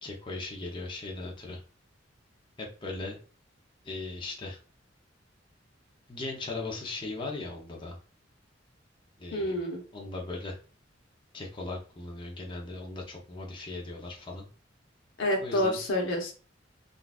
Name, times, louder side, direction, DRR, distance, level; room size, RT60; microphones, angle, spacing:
voice 1, 0.0-1.6 2.6-3.2 3.8-4.6 6.1-8.0 9.2-9.5 9.9-10.5 11.3-14.5 15.4-15.8, left 2 dB, 25° left, -1 dB, 0.6 m, -38 dB
voice 2, 9.3-9.8 15.2-16.3, left 1 dB, 85° left, 0 dB, 0.8 m, -28 dB
3.8 x 2.3 x 2.4 m, 0.36 s
head